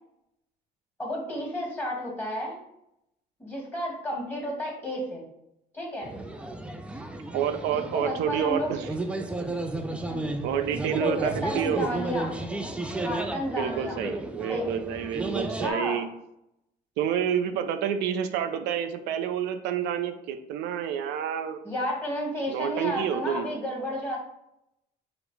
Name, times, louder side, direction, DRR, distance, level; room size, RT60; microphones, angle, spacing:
voice 1, 1.0-2.6 3.4-5.2 5.7-6.1 7.7-8.7 10.0-10.3 10.7-12.3 13.0-14.0 14.5-14.7 15.3-16.0 21.6-24.2, equal, 10° left, -2 dB, 1.6 m, -32 dB
sound 1, 6.0-15.7, right 2 dB, 5° right, 0.3 m, -33 dB
voice 2, 7.3-8.9 10.4-11.9 13.6-16.1 17.0-21.6 22.5-23.5, right 8 dB, 90° right, 8 dB, 0.4 m, -28 dB
4.9 x 2.0 x 4.6 m, 0.81 s
cardioid pair, 110°, 17 cm